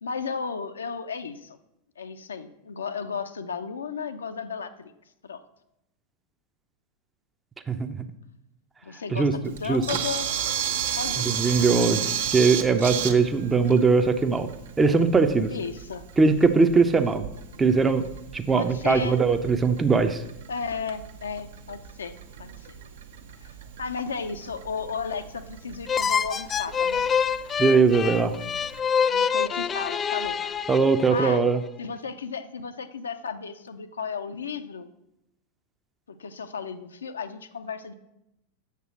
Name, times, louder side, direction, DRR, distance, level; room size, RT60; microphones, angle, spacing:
voice 1, 0.0-1.6 2.0-4.9 5.2-5.4 8.8-10.3 11.0-11.5 15.5-16.1 18.5-19.2 20.5-22.7 23.4-23.5 23.8-27.1 29.0-30.4 31.1-31.4 31.8-34.9 36.1-37.9, left 5 dB, 70° left, 8 dB, 0.6 m, -34 dB
Camera, 9.5-28.8, right 8 dB, 60° right, 0.9 m, -35 dB
voice 2, 11.3-12.1 12.3-14.5 14.8-15.5 16.2-17.3 17.6-18.0 18.3-20.2 27.6-28.3 30.7-31.6, right 4 dB, 15° right, 8 dB, 0.6 m, -20 dB
sound 1, 25.9-31.4, left 7 dB, 20° left, 0.3 m, -26 dB
8.2 x 6.9 x 6.1 m, 0.86 s
figure-of-eight pair, 90°, 0 cm